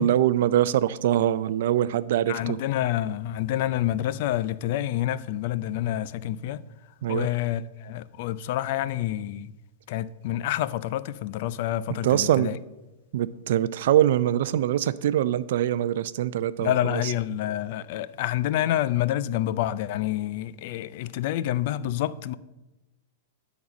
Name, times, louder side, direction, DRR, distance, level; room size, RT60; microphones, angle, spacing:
voice 1, 0.0-2.6 7.0-7.3 12.0-12.5 13.1-17.0, right 11 dB, 70° right, 0.4 m, -23 dB
voice 2, 2.3-6.6 7.1-9.5 9.9-12.6 16.6-22.4, left 13 dB, 55° left, 0.4 m, -28 dB
10.5 x 4.1 x 6.1 m
hypercardioid pair, 140°, 0 cm